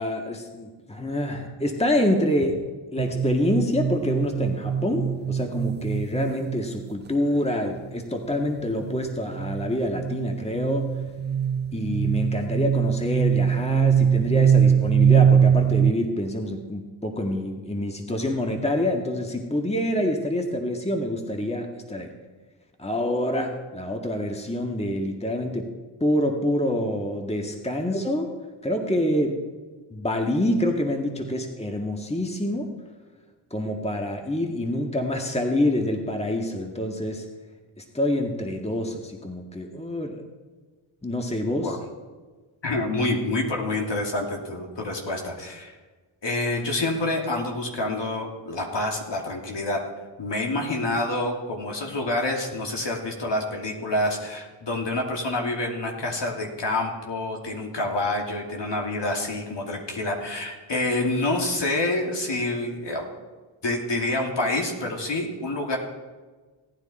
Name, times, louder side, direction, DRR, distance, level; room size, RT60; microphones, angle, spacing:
voice 1, 0.0-2.7 2.9-10.9 11.7-22.1 22.8-25.7 26.0-28.3 28.6-29.4 29.9-32.7 33.5-37.3 37.8-40.2 41.0-41.8, left 1 dB, 10° left, 3 dB, 1.8 m, -26 dB
sound 1, 3.0-6.8 8.3-15.9, right 8 dB, 25° right, 0.3 m, -22 dB
voice 2, 42.6-45.7 46.2-49.8 50.2-63.0 63.6-65.8, left 2 dB, 55° left, 0 dB, 2.9 m, -27 dB
17.5 x 9.7 x 4.3 m, 1.3 s
supercardioid pair, 50°, 50 cm